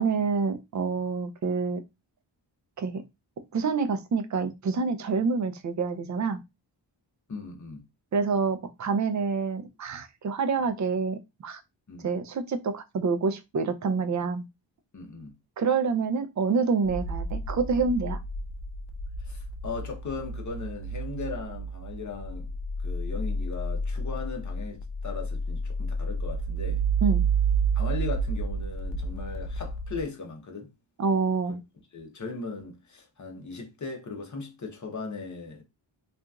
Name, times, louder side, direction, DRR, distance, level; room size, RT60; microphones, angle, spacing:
voice 1, 0.0-1.8 2.8-3.0 3.5-6.4 8.1-11.6 12.0-14.5 15.6-18.2 27.0-27.2 31.0-31.6, right 5 dB, 40° right, 0.4 m, -27 dB
voice 2, 7.3-7.8 11.9-12.1 14.9-15.3 19.2-22.5 22.8-26.8 27.7-30.7 31.5-31.6 31.9-35.6, left 4 dB, 40° left, 0.8 m, -38 dB
sound 1, 16.9-30.0, right 4 dB, 65° left, 0.5 m, -30 dB
2.8 x 2.5 x 2.3 m
wide cardioid pair, 130°, 45 cm